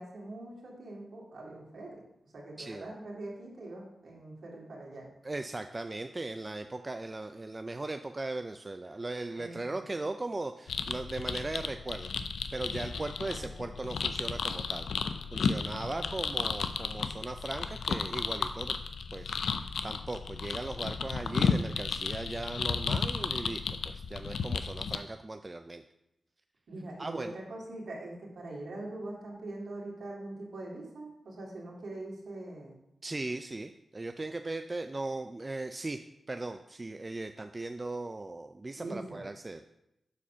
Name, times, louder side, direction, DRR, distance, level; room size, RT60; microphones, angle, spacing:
voice 1, 0.0-2.0 2.3-5.1 9.3-9.8 12.9-13.7 15.8-16.2 26.7-32.7 38.8-39.2, right 2 dB, 75° right, -3 dB, 2.5 m, -43 dB
voice 2, 2.6-2.9 5.2-12.1 12.5-14.9 15.3-18.8 19.1-19.4 19.8-25.8 27.0-27.4 33.0-36.0 36.3-39.6, right 2 dB, 35° right, 7 dB, 0.4 m, -38 dB
sound 1, 10.7-25.0, left 5 dB, 80° left, 0.4 m, -33 dB
7.4 x 4.2 x 5.7 m, 0.83 s
cardioid pair, 45°, 0 cm